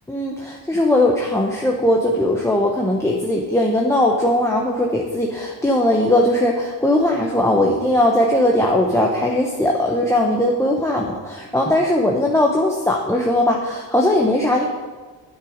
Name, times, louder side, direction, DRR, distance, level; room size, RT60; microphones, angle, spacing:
voice 1, 0.1-14.7, left 1 dB, 5° left, -1 dB, 0.9 m, -19 dB
10.0 x 8.1 x 5.1 m, 1.4 s
cardioid pair, 140°, 43 cm